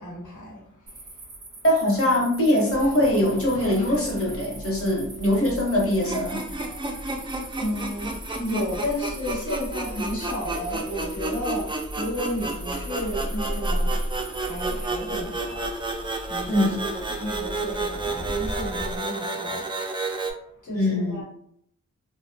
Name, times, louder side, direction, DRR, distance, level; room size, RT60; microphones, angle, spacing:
voice 1, 0.0-1.6 7.0-7.3 7.5-21.2, left 1 dB, 75° left, -3 dB, 1.1 m, -33 dB
sound 1, 0.9-14.9, right 2 dB, 35° right, 0.8 m, -44 dB
voice 2, 1.6-6.4 16.5-16.8 20.7-21.2, left 1 dB, 45° left, -3 dB, 1.0 m, -22 dB
sound 2, 2.7-19.0, equal, 25° left, 0.7 m, -36 dB
sound 3, 6.0-20.3, right 3 dB, 15° right, 0.3 m, -31 dB
2.7 x 2.1 x 2.6 m, 0.70 s
wide cardioid pair, 85°, 31 cm